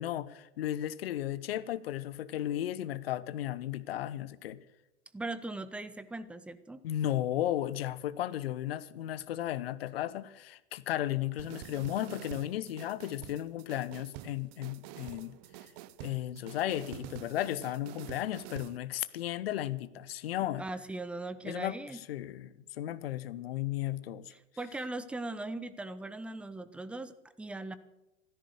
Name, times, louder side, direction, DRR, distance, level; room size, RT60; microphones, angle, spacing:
voice 1, 0.0-4.6 6.8-15.4 16.0-20.6 21.4-24.3, left 12 dB, 55° left, 1.0 m, -35 dB
voice 2, 5.1-6.8 20.6-22.0 24.3-27.8, right 2 dB, 5° right, 0.7 m, -39 dB
sound 1, 11.4-18.8, right 14 dB, 35° right, 0.8 m, -47 dB
15.0 x 13.0 x 6.5 m
figure-of-eight pair, 90°, 36 cm